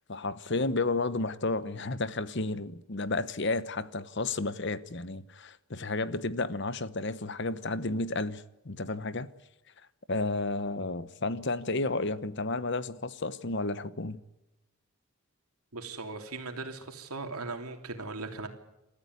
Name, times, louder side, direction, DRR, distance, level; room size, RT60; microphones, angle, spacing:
voice 1, 0.1-9.3 10.1-14.2, left 3 dB, 50° left, 1.0 m, -32 dB
voice 2, 15.7-18.5, right 3 dB, 85° right, 3.2 m, -38 dB
28.5 x 14.0 x 9.7 m
head